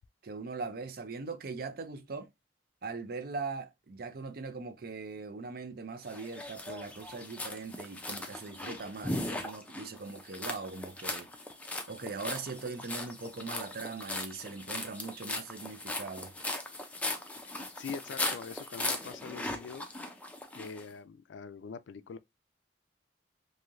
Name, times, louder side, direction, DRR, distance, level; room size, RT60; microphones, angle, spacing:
voice 1, 0.2-2.3 2.8-11.3 11.9-16.3, right 4 dB, 50° right, 0.5 m, -40 dB
sound 1, 6.1-20.8, left 2 dB, 10° left, 0.4 m, -38 dB
voice 2, 17.4-19.9 20.5-22.2, left 5 dB, 75° left, 0.3 m, -44 dB
3.1 x 2.7 x 2.4 m
head